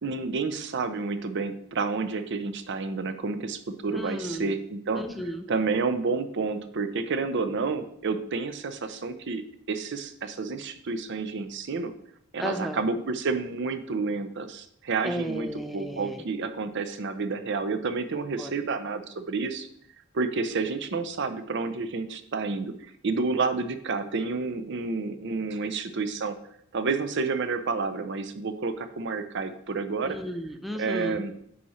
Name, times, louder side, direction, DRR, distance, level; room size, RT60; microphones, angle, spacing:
voice 1, 0.0-5.0 5.5-11.9 12.3-19.7 20.1-22.7 23.0-26.4 26.7-30.2 30.8-31.3, right 4 dB, 60° right, 10 dB, 0.6 m, -30 dB
voice 2, 3.9-4.5 4.9-5.5 12.4-12.8 15.0-16.2 18.4-18.5 30.0-31.2, equal, ahead, 5 dB, 0.6 m, -33 dB
9.5 x 4.2 x 4.3 m, 0.69 s
head